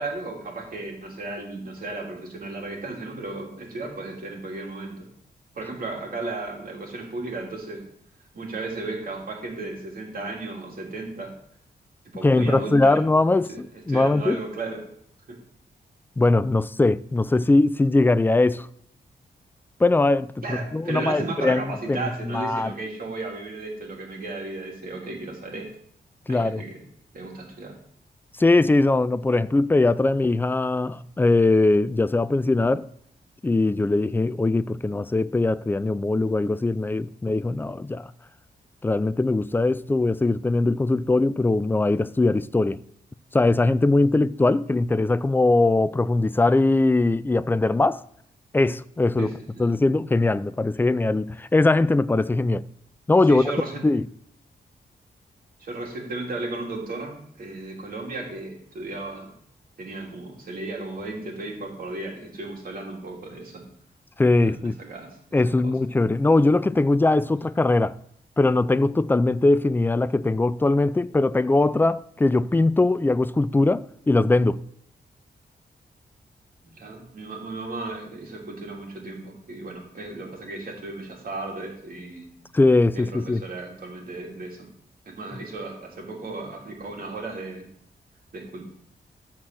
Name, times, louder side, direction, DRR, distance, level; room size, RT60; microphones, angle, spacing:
voice 1, 0.0-5.1 5.5-7.8 8.3-11.3 12.1-13.0 13.5-14.8 15.3-15.4 20.4-25.7 26.3-26.8 27.1-27.8 49.2-49.7 53.3-53.8 55.6-59.3 59.8-63.6 64.4-65.1 65.6-65.7 76.8-82.3 82.9-84.6 85.0-87.7 88.3-88.6, right 2 dB, 55° right, 3.0 m, -35 dB
voice 2, 12.2-14.4 16.2-18.7 19.8-22.7 26.3-26.6 28.4-32.8 33.4-38.1 38.8-42.8 43.3-48.0 48.5-49.3 49.6-52.6 53.1-53.4 53.8-54.0 64.2-64.7 65.3-68.0 68.4-74.6 82.5-83.4, left 2 dB, 10° left, 0.3 m, -21 dB
13.0 x 4.4 x 7.5 m
wide cardioid pair, 125°, 17 cm